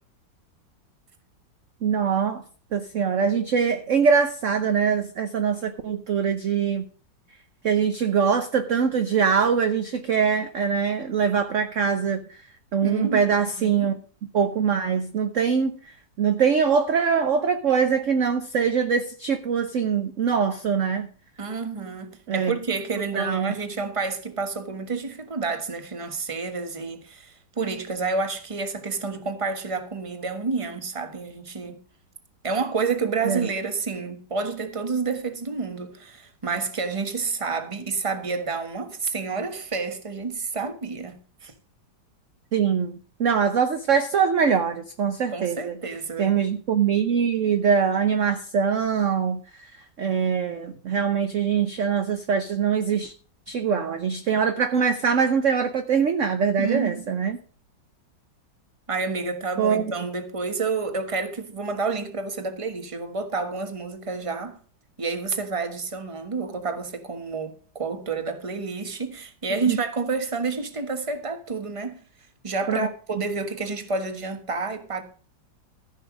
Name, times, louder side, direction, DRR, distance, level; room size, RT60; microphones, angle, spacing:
voice 1, 1.8-2.4 2.7-6.8 7.6-12.2 12.7-13.9 14.3-15.7 16.2-21.1 22.3-22.5 23.1-23.5 33.2-33.5 42.5-45.7 46.2-49.4 50.0-53.1 53.5-57.4 59.6-59.9 69.7-69.8 72.7-72.9, right 6 dB, 55° right, 1.0 m, -23 dB
voice 2, 12.8-13.3 13.6-13.9 21.4-31.8 32.4-41.5 45.3-46.3 56.6-57.2 58.9-64.6 65.0-72.0 72.4-75.0, right 4 dB, 20° right, 1.2 m, -29 dB
14.5 x 5.9 x 6.1 m
omnidirectional pair, 2.0 m